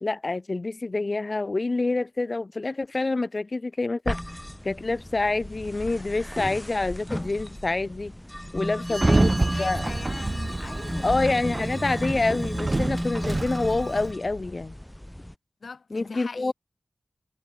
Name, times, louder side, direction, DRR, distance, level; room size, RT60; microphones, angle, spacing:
voice 1, 0.0-4.2 4.6-8.1 8.5-9.8 11.0-14.7 15.9-16.5, left 3 dB, 40° left, 0.5 m, -27 dB
sound 1, 4.1-15.3, left 1 dB, 10° left, 1.5 m, -35 dB
voice 2, 8.8-11.2 15.6-16.5, left 4 dB, 75° left, 1.9 m, -41 dB
Sliding door, 8.9-14.1, right 2 dB, 30° right, 0.4 m, -27 dB
wide cardioid pair, 95°, 0 cm